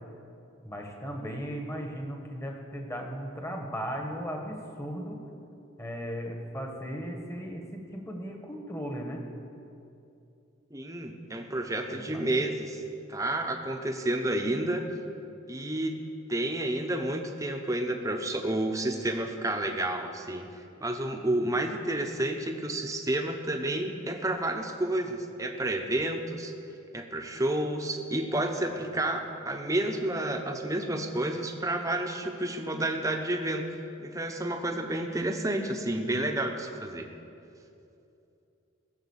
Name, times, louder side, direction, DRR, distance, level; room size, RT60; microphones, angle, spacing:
voice 1, 0.6-5.2 5.8-9.2 11.9-12.3, equal, 15° left, 2 dB, 1.5 m, -37 dB
voice 2, 10.7-12.8 13.1-14.8 15.5-16.0 16.3-20.4 20.8-26.5 26.9-33.6 34.0-37.1, right 1 dB, 15° right, 4 dB, 1.0 m, -30 dB
17.5 x 7.3 x 7.4 m, 2.7 s
head